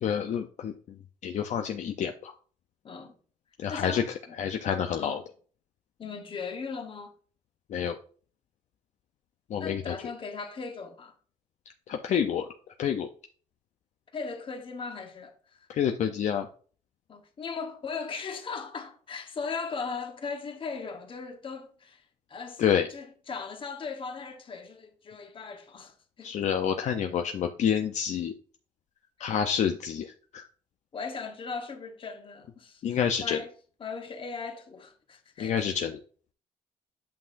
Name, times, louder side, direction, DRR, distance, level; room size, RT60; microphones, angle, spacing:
voice 1, 0.0-2.3 3.6-4.0 4.4-5.2 7.7-8.0 9.5-9.9 11.9-12.5 12.8-13.1 15.7-16.5 22.6-22.9 26.2-28.3 29.2-30.5 32.8-33.4 35.4-36.0, left 8 dB, 60° left, 0.6 m, -28 dB
voice 2, 2.8-3.2 3.7-4.4 5.0-5.2 6.0-7.1 9.6-11.1 14.1-15.7 17.1-22.6 22.9-26.3 29.2-29.3 30.9-33.5 33.8-35.6, left 5 dB, 40° left, 1.1 m, -38 dB
8.7 x 5.6 x 2.6 m
cardioid pair, 115°, 13 cm